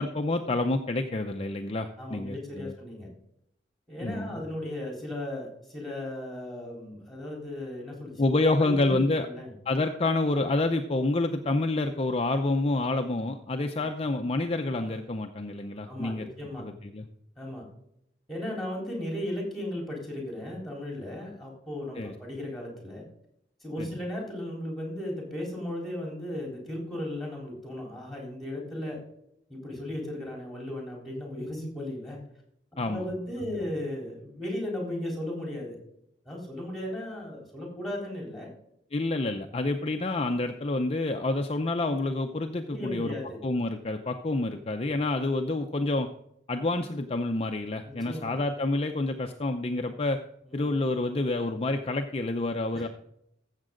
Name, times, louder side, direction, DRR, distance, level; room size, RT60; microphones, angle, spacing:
voice 1, 0.0-2.7 4.0-4.4 8.2-9.3 9.7-16.3 16.6-17.1 22.0-22.1 23.8-23.9 32.8-33.1 33.4-33.5 38.9-43.1 43.4-46.1 46.5-50.2 50.5-52.9, left 2 dB, 35° left, 5 dB, 0.6 m, -28 dB
voice 2, 2.0-3.1 3.9-8.2 8.5-9.5 15.8-16.7 17.4-17.6 18.3-23.0 23.6-29.0 29.5-32.2 32.7-35.8 36.2-38.5 42.7-43.4 47.8-48.4 50.4-50.7 52.7-52.9, left 1 dB, ahead, -2 dB, 3.9 m, -36 dB
14.0 x 7.4 x 3.8 m, 0.75 s
head